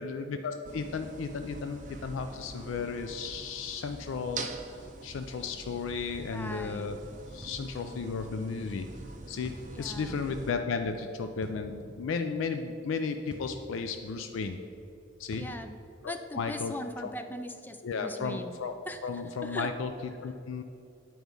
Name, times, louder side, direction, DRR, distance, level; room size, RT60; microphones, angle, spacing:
voice 1, 0.0-4.5 5.0-7.0 7.3-8.9 9.3-14.6 15.2-15.4 16.0-16.7 17.0-17.1 17.8-18.8 19.0-19.9 20.2-20.6, left 5 dB, 80° left, 7 dB, 0.4 m, -34 dB
sound 1, 0.6-10.5, right 3 dB, 40° right, 0.5 m, -44 dB
voice 2, 6.3-6.9 9.7-10.2 15.4-15.8 16.1-18.6 18.9-19.7, left 1 dB, 10° left, 7 dB, 0.3 m, -40 dB
sound 2, 7.4-7.7 9.4-9.7 11.4-11.6 13.3-13.6 15.3-15.6, equal, 5° right, 0.7 m, -45 dB
8.1 x 4.6 x 5.3 m, 2.6 s
head